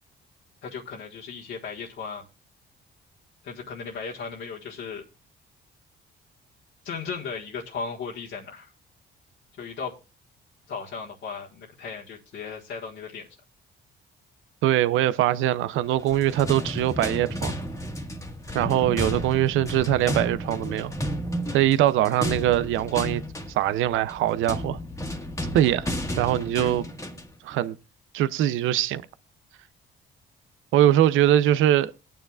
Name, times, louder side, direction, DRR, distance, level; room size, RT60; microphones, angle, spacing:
voice 1, 0.6-2.3 3.4-5.0 6.8-8.7 9.6-10.0 10.7-13.3 26.6-26.7, left 5 dB, 70° left, 1.6 m, -36 dB
voice 2, 14.6-17.6 18.5-20.9 21.5-23.2 23.5-24.8 25.5-25.9 26.2-26.8 27.4-27.8 28.1-29.0 30.7-31.9, right 12 dB, 90° right, 0.6 m, -22 dB
sound 1, 15.9-27.4, equal, 15° left, 1.6 m, -32 dB
20.5 x 9.2 x 2.4 m
cardioid pair, 90°, 20 cm